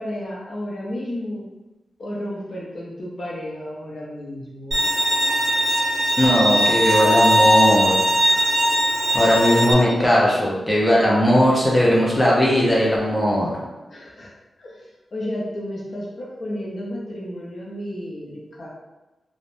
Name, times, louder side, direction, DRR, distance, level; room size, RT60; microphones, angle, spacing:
voice 1, 0.0-1.5 2.0-4.8 9.5-9.7 11.1-11.2 13.9-14.3 14.6-18.7, left 1 dB, 50° left, -4 dB, 0.6 m, -32 dB
Bowed string instrument, 4.7-9.7, equal, 50° right, 0.9 m, -19 dB
voice 2, 6.2-7.9 9.1-13.6, equal, 10° left, -6 dB, 0.6 m, -18 dB
3.0 x 2.1 x 2.5 m, 1.1 s
wide cardioid pair, 140°, 0 cm